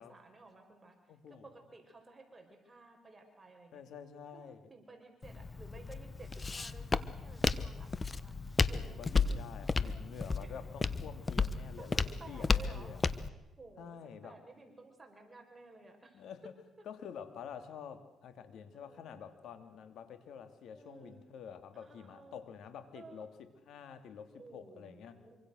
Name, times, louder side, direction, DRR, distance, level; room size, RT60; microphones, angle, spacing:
voice 1, 0.0-0.9 1.3-3.8 4.3-8.3 8.7-9.0 9.8-10.0 10.4-10.6 11.6-13.0 13.6-16.2 18.7-19.2 20.7-21.2 21.7-22.4 22.9-23.2 24.3-25.4, right 3 dB, 20° right, 3 dB, 5.3 m, -55 dB
voice 2, 1.1-1.5 3.7-4.6 8.7-13.0 13.8-14.4 16.1-16.5 16.8-25.2, left 7 dB, 75° left, 9 dB, 2.7 m, -48 dB
Walk footsteps, 5.2-13.3, left 4 dB, 25° left, 1.2 m, -33 dB
26.0 x 25.0 x 6.5 m, 0.98 s
cardioid pair, 90°, 0 cm